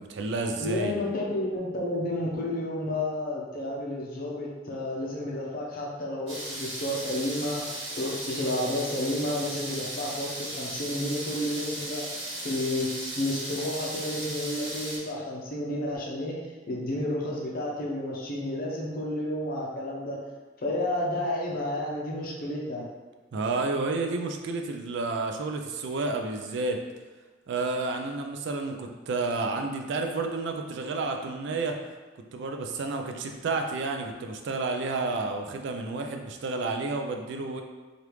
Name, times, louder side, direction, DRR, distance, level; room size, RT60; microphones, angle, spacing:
voice 1, 0.0-1.0 23.3-26.8 27.5-31.8 32.3-37.6, right 3 dB, 65° right, 4 dB, 0.4 m, -30 dB
voice 2, 0.6-12.1 12.4-20.2 20.6-22.8, left 1 dB, 50° left, -3 dB, 0.7 m, -31 dB
sound 1, 6.3-15.0, right 1 dB, 85° right, 1.1 m, -36 dB
3.3 x 2.5 x 3.0 m, 1.3 s
head